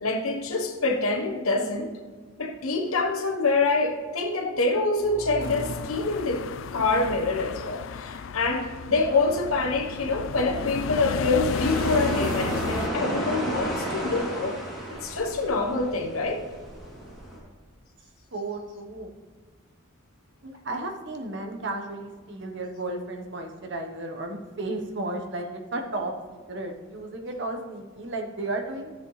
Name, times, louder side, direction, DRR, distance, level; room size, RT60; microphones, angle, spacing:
voice 1, 0.0-1.9 2.4-6.5 6.7-14.6 14.9-16.4, left 3 dB, 80° left, 3 dB, 1.2 m, -26 dB
sound 1, 4.9-7.8, right 1 dB, 85° right, 1.1 m, -41 dB
sound 2, 5.4-12.9, left 5 dB, 60° left, 0.4 m, -33 dB
sound 3, 11.4-17.4, right 1 dB, ahead, 2.8 m, -32 dB
voice 2, 18.3-19.1 20.4-28.9, right 2 dB, 55° right, 3 dB, 1.1 m, -34 dB
13.5 x 7.5 x 3.3 m, 1.4 s
head